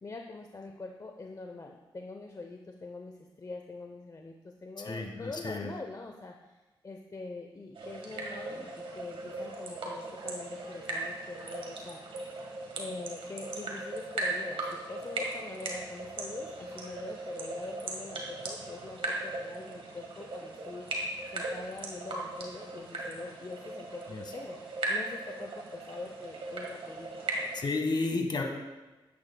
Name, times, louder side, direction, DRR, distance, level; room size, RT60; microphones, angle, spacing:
voice 1, 0.0-6.6 6.8-12.0 12.8-20.9 21.3-24.0 24.3-24.6 24.9-27.5, left 3 dB, 40° left, 3 dB, 0.7 m, -44 dB
voice 2, 4.8-5.7 24.1-24.2 27.5-28.4, left 3 dB, 55° left, 3 dB, 1.5 m, -32 dB
sound 1, 7.8-27.6, right 2 dB, 85° right, 1.6 m, -38 dB
11.0 x 9.4 x 2.3 m, 1.2 s
cardioid pair, 60°, 9 cm